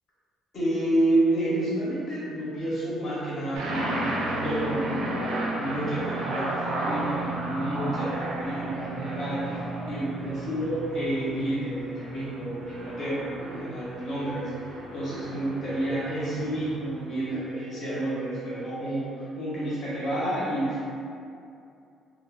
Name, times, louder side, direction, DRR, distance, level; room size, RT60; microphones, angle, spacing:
voice 1, 0.5-20.8, right 1 dB, 40° left, -9 dB, 1.0 m, -29 dB
sound 1, 3.5-17.2, right 1 dB, 80° right, 0.5 m, -33 dB
2.6 x 2.4 x 3.4 m, 2.5 s
cardioid pair, 175°, 0 cm